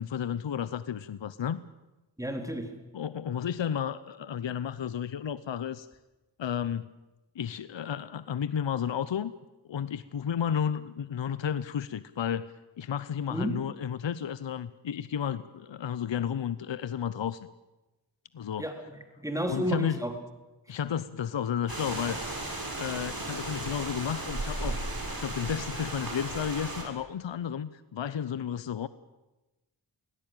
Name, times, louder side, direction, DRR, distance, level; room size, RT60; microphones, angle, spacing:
voice 1, 0.0-1.6 2.9-5.9 6.4-7.0 7.3-9.3 9.7-17.5 18.3-18.7 19.5-20.0 20.7-22.2 22.8-24.9 25.2-28.9, left 8 dB, 70° left, 15 dB, 0.8 m, -32 dB
voice 2, 2.2-2.7 13.3-13.6 18.6-20.1, equal, 5° right, 5 dB, 3.7 m, -32 dB
sound 1, 21.7-26.8, right 2 dB, 45° right, 6.2 m, -35 dB
23.0 x 17.0 x 9.1 m, 1.1 s
wide cardioid pair, 55°, 46 cm